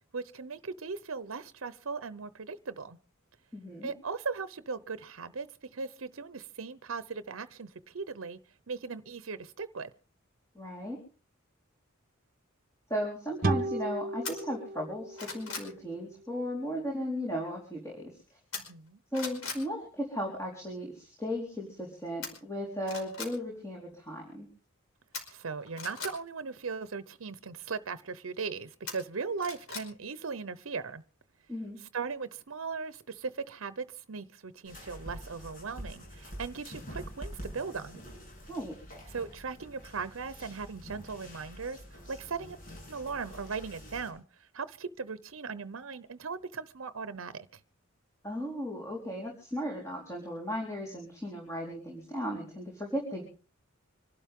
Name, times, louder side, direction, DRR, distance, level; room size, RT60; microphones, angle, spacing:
voice 1, 0.1-3.0 3.8-5.5 5.7-8.4 8.7-9.9 18.7-19.0 25.3-31.0 31.8-38.0 39.1-42.6 42.9-47.5, right 5 dB, 75° right, 0.8 m, -38 dB
voice 2, 3.5-3.9 10.5-11.0 12.9-18.2 19.1-24.5 31.5-31.8 38.5-38.7 48.2-53.2, equal, 15° left, 4.3 m, -36 dB
sound 1, 13.4-16.8, right 2 dB, 45° right, 1.2 m, -35 dB
sound 2, 14.2-14.4 14.9-15.7 18.5-18.9 19.1-19.6 22.2-22.3 22.8-23.3 25.1-26.1 28.9-29.9 30.2-30.3, left 4 dB, 85° left, 5.1 m, -39 dB
sound 3, 34.6-44.1, equal, 40° left, 7.5 m, -46 dB
26.0 x 12.0 x 3.7 m
head